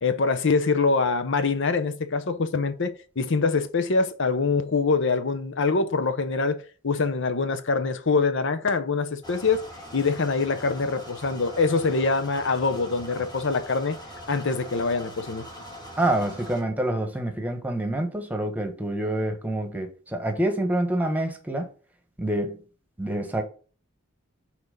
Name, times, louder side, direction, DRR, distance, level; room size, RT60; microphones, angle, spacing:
voice 1, 0.0-9.6 9.9-14.0 14.3-15.5, left 4 dB, 65° left, 0.7 m, -24 dB
sound 1, 9.2-16.6, equal, 20° left, 2.0 m, -42 dB
voice 2, 16.0-21.7 22.2-22.6 23.0-23.4, right 1 dB, 10° right, 1.3 m, -27 dB
6.0 x 4.4 x 5.2 m
head